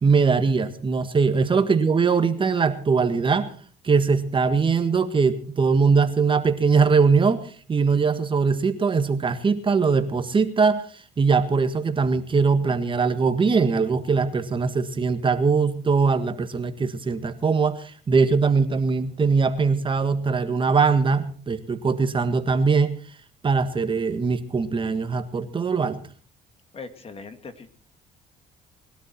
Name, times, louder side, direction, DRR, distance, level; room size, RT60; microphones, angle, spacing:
voice 1, 0.0-3.5 3.8-7.4 7.7-22.9 23.4-26.0, right 5 dB, 30° right, 9 dB, 1.7 m, -21 dB
voice 2, 26.7-27.7, left 4 dB, 35° left, 9 dB, 2.2 m, -39 dB
21.0 x 12.5 x 4.5 m, 0.43 s
cardioid pair, 110°, 17 cm